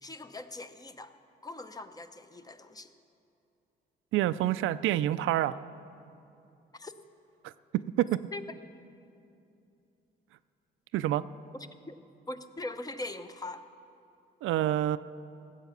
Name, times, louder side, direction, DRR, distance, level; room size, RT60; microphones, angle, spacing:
voice 1, 0.0-1.1 1.4-2.9 6.7-6.9 8.3-8.4 11.5-11.9 12.3-13.6, left 2 dB, 20° left, 10 dB, 0.7 m, -41 dB
voice 2, 4.1-5.6 7.4-8.2 10.9-11.2 14.4-15.0, right 13 dB, 85° right, 14 dB, 0.4 m, -28 dB
16.5 x 8.2 x 6.7 m, 2.7 s
cardioid pair, 90°, 20 cm